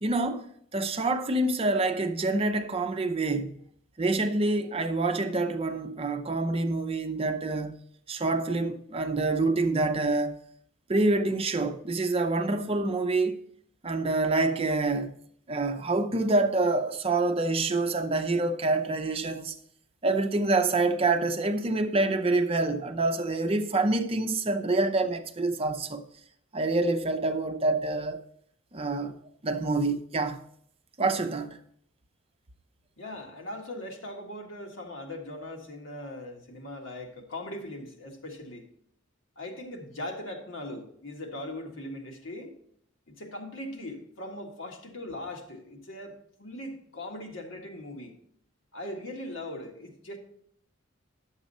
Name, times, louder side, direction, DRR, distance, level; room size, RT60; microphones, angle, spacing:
voice 1, 0.0-3.6 4.0-7.8 8.1-10.4 10.9-13.4 13.8-15.1 15.5-19.6 20.0-26.0 26.5-28.2 28.7-29.1 29.4-30.4 31.0-31.6, right 2 dB, 30° right, 0.6 m, -27 dB
voice 2, 33.0-38.7 39.3-42.5 43.1-48.2 48.7-50.2, left 1 dB, 75° left, 1.7 m, -40 dB
10.5 x 7.3 x 4.2 m
head